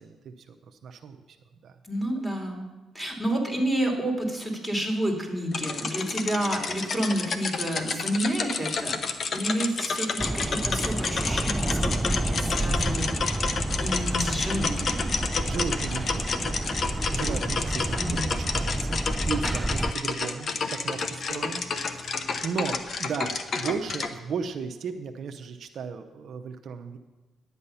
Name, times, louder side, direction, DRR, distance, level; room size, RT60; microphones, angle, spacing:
voice 1, 0.0-1.4 1.6-1.8 15.5-16.5 17.1-27.0, right 6 dB, 60° right, 6 dB, 0.7 m, -35 dB
voice 2, 1.9-2.6 2.9-9.0 9.3-13.3 13.8-15.2 18.0-18.3, right 1 dB, 10° left, 1 dB, 2.7 m, -30 dB
sound 1, 5.5-24.1, left 4 dB, 50° left, 0.8 m, -30 dB
sound 2, 10.2-19.9, right 1 dB, 15° right, 0.3 m, -29 dB
11.0 x 8.3 x 5.6 m, 1.2 s
cardioid pair, 90°, 0 cm